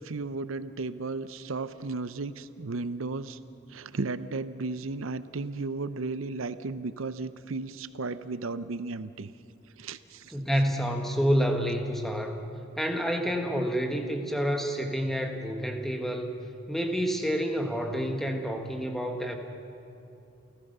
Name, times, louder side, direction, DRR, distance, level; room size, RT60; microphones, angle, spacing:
voice 1, 0.0-3.4 3.7-9.3 9.8-10.3, right 3 dB, 80° right, 14 dB, 0.7 m, -34 dB
voice 2, 10.3-12.4 12.8-16.3 16.7-19.4, equal, ahead, 4 dB, 1.5 m, -28 dB
29.0 x 15.0 x 6.7 m, 2.7 s
head